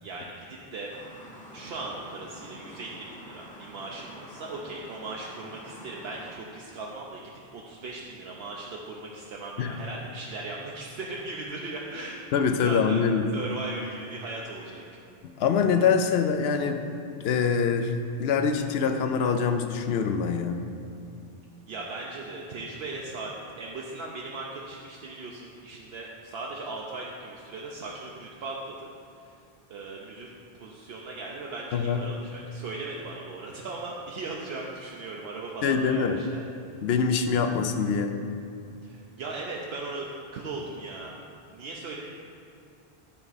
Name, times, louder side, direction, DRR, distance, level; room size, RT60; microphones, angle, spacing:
voice 1, 0.0-0.9 1.5-7.2 7.5-12.2 12.6-13.0 13.3-14.9 21.7-28.9 29.2-29.4 29.7-30.3 30.6-36.4 38.8-40.1 40.3-41.2 41.5-42.0, right 3 dB, 75° right, -2 dB, 0.9 m, -38 dB
sound 1, 0.9-6.3, equal, 10° left, 0.7 m, -47 dB
voice 2, 12.3-13.3 15.4-16.8 17.2-17.9 18.2-20.7 31.7-32.0 35.6-36.2 36.8-38.2, left 6 dB, 80° left, 7 dB, 0.8 m, -24 dB
10.5 x 4.6 x 4.0 m, 2.4 s
omnidirectional pair, 1.0 m